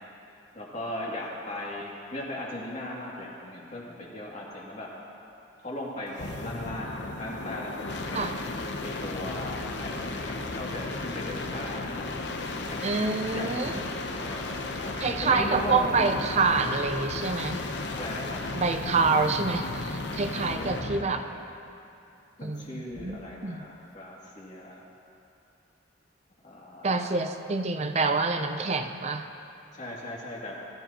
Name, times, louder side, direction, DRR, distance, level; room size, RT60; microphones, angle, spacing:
voice 1, 0.5-4.9 5.6-8.4 8.8-11.8 12.6-13.8 14.2-14.9 15.2-16.4 17.9-18.4 20.4-21.4 22.4-24.8 26.4-27.2 29.7-30.5, left 1 dB, 40° left, -5 dB, 2.5 m, -38 dB
sound 1, 6.1-21.1 22.9-23.4, left 2 dB, 65° left, 0.8 m, -35 dB
voice 2, 12.8-13.8 15.0-17.6 18.5-21.2 22.4-23.6 26.8-29.3, right 4 dB, 35° right, 7 dB, 0.5 m, -27 dB
20.5 x 13.5 x 2.9 m, 2.6 s
head